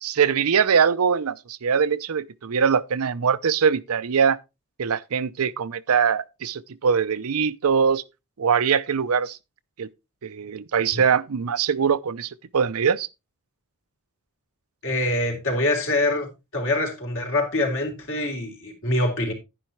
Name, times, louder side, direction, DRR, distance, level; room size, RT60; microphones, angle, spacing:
voice 1, 0.0-4.4 4.8-8.0 8.4-9.4 9.8-9.9 10.2-13.1, right 6 dB, 70° right, 0.5 m, -22 dB
voice 2, 14.8-16.3 16.5-19.3, left 2 dB, 65° left, 3.9 m, -24 dB
10.5 x 10.0 x 3.1 m
head